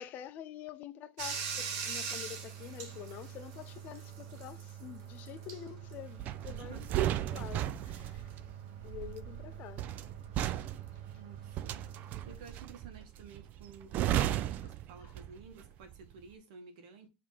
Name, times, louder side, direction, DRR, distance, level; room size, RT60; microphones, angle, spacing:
voice 1, 0.0-8.3 8.8-9.8 15.0-15.1, left 11 dB, 45° left, 0.6 m, -47 dB
Bathtub (filling or washing), 1.2-12.4, right 7 dB, 65° right, 1.4 m, -44 dB
sound 1, 6.2-15.5 15.8-16.1, right 12 dB, 45° right, 0.4 m, -35 dB
voice 2, 6.5-6.9 11.1-17.1, right 5 dB, 80° right, 1.7 m, -53 dB
sound 2, 7.3-8.0 8.3-8.4, right 3 dB, 10° right, 0.7 m, -50 dB
5.2 x 3.5 x 5.7 m
supercardioid pair, 140°, 4 cm